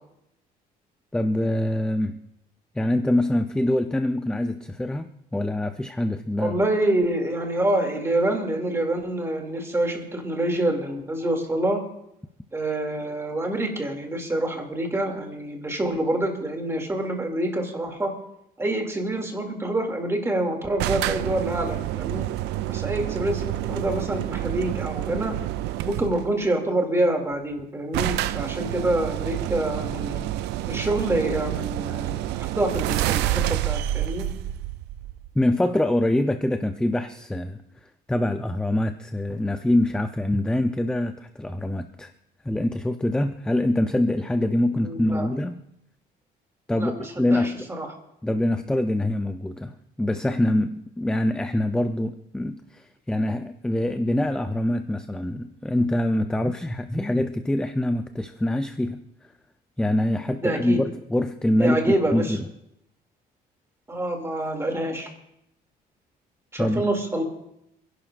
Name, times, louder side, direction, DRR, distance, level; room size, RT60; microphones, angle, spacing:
voice 1, 1.1-2.2 2.7-6.6 35.3-37.6 38.1-42.1 42.4-45.6 46.7-47.7 48.2-59.0 59.8-61.8 62.1-62.5 66.6-66.9, left 1 dB, 5° left, 8 dB, 0.6 m, -24 dB
voice 2, 6.4-11.8 12.5-18.1 18.6-22.3 22.7-25.4 25.8-30.2 30.6-34.3 44.7-45.3 46.7-47.9 60.4-60.8 61.6-62.4 63.9-65.1 66.5-67.2, right 1 dB, 15° right, 2 dB, 2.6 m, -26 dB
sound 1, 20.8-26.3 27.3-27.4 27.6-27.7 27.9-35.4, right 14 dB, 85° right, 0.5 m, -28 dB
28.5 x 11.0 x 2.6 m, 0.82 s
cardioid pair, 110°, 17 cm